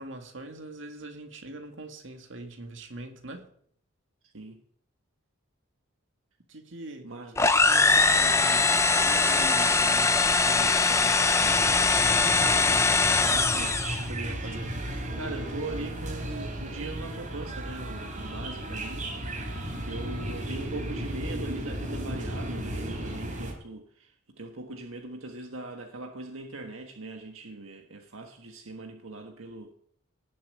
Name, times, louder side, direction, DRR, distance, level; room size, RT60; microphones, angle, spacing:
voice 1, 0.0-3.5 6.5-7.1 7.5-12.0 12.3-14.7, right 2 dB, 65° right, 2.3 m, -42 dB
voice 2, 4.2-4.6 7.0-7.4 14.5-14.6 15.2-19.5 19.8-29.7, right 2 dB, 80° right, 1.6 m, -40 dB
sound 1, 7.4-14.1, left 3 dB, 15° left, 0.7 m, -22 dB
sound 2, 11.4-23.5, right 1 dB, 40° right, 3.6 m, -35 dB
18.0 x 7.4 x 8.7 m
head